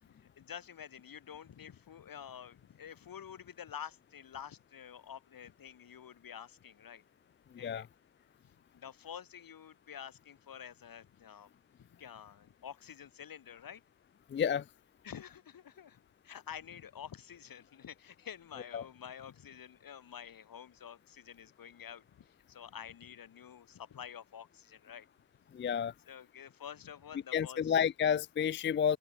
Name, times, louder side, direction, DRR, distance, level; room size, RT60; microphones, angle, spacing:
voice 1, 0.0-7.0 7.6-7.9 8.4-11.5 11.8-13.8 15.0-25.1 26.1-27.7, left 8 dB, 75° left, 2.8 m, -49 dB
voice 2, 14.3-14.6 18.7-18.8 25.5-25.9 27.3-29.0, left 8 dB, 35° left, 0.4 m, -30 dB
open air
cardioid pair, 85°, 35 cm